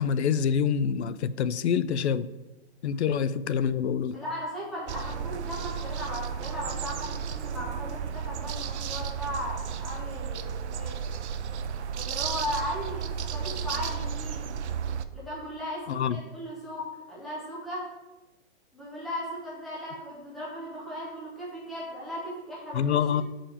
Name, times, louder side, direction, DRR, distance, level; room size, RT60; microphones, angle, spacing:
voice 1, 0.0-2.3 2.8-4.2 15.9-16.2 22.7-23.2, left 7 dB, 75° left, 15 dB, 0.5 m, -26 dB
voice 2, 4.1-11.0 11.9-14.5 15.1-17.9 18.7-23.2, left 1 dB, ahead, -7 dB, 0.4 m, -37 dB
sound 1, 4.9-15.1, right 7 dB, 75° right, 0.6 m, -33 dB
7.2 x 5.0 x 5.0 m, 1.1 s
hypercardioid pair, 160°, 34 cm